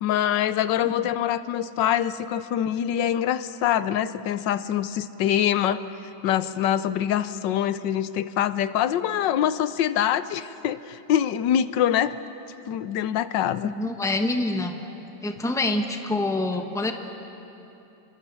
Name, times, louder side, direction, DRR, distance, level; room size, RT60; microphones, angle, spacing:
voice 1, 0.0-5.8 6.2-12.2 12.7-13.7, left 10 dB, 90° left, 14 dB, 1.4 m, -24 dB
voice 2, 13.6-14.8 15.2-16.9, left 2 dB, ahead, 5 dB, 1.1 m, -26 dB
28.5 x 23.5 x 7.0 m, 2.9 s
omnidirectional pair, 1.9 m